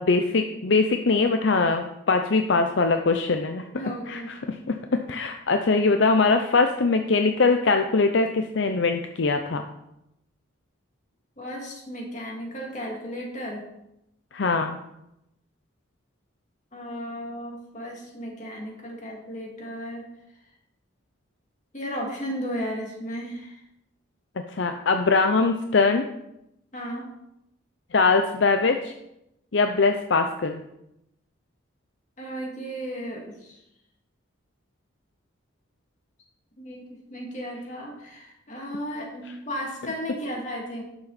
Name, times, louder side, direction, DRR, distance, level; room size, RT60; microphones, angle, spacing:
voice 1, 0.0-3.6 4.1-4.2 4.7-9.6 14.3-14.8 24.5-26.0 27.9-28.9 29.5-30.6, left 4 dB, 65° left, 6 dB, 0.6 m, -22 dB
voice 2, 3.7-4.3 11.4-13.6 16.7-20.0 21.7-23.6 26.7-27.1 32.2-33.6 36.6-40.8, equal, 35° left, -1 dB, 2.4 m, -34 dB
11.5 x 7.0 x 4.2 m, 0.85 s
head